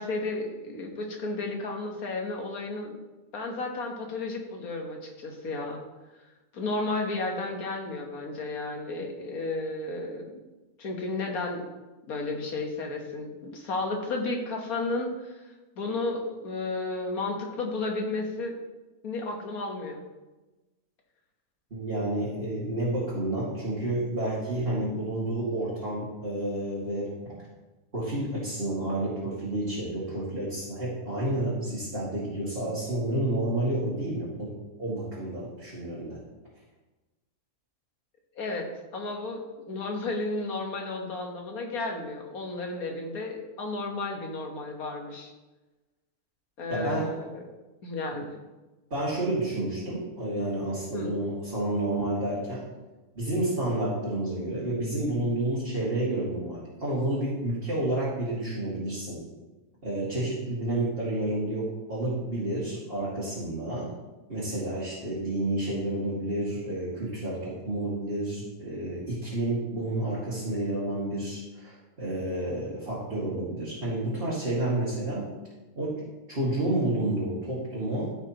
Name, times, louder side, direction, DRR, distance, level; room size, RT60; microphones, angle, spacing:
voice 1, 0.0-3.0 3.3-5.8 6.5-10.4 10.8-11.7 12.1-18.6 19.0-20.0 38.4-38.7 38.9-45.3 46.6-47.5 47.8-48.3 50.9-51.1, left 2 dB, 70° left, 1 dB, 1.8 m, -33 dB
voice 2, 21.7-27.1 27.9-36.2 46.7-47.1 48.9-52.6 53.1-59.3 59.8-63.9 64.3-75.3 75.8-76.0 76.3-78.1, right 1 dB, 40° right, -8 dB, 2.3 m, -30 dB
14.5 x 5.9 x 3.0 m, 1.1 s
omnidirectional pair, 1.6 m